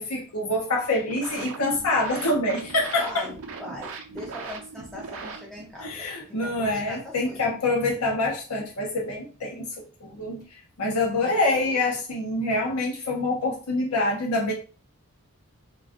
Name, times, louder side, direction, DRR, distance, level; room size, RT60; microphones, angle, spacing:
voice 1, 0.0-3.2 5.8-14.5, left 2 dB, 75° left, -1 dB, 0.7 m, -26 dB
sound 1, 0.8-5.8, right 4 dB, 60° right, 0.5 m, -39 dB
voice 2, 3.0-7.6 11.2-11.8, equal, ahead, -2 dB, 0.4 m, -40 dB
2.5 x 2.3 x 3.5 m, 0.37 s
head